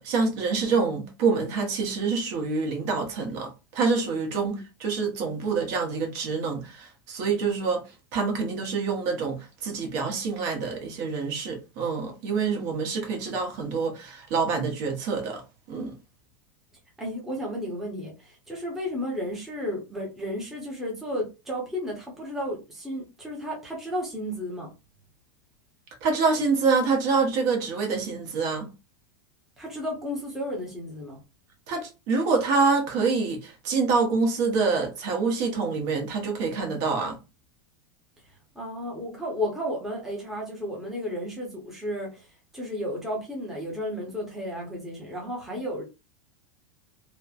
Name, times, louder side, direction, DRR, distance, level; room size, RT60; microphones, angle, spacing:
voice 1, 0.0-7.8 8.1-15.4 15.7-15.9 26.0-28.7 31.7-37.1, right 4 dB, 50° right, 0.9 m, -26 dB
voice 2, 17.0-24.7 29.6-31.2 38.5-42.3 42.5-45.8, equal, 5° right, 0.7 m, -33 dB
3.0 x 2.1 x 2.4 m
supercardioid pair, 155°, 12 cm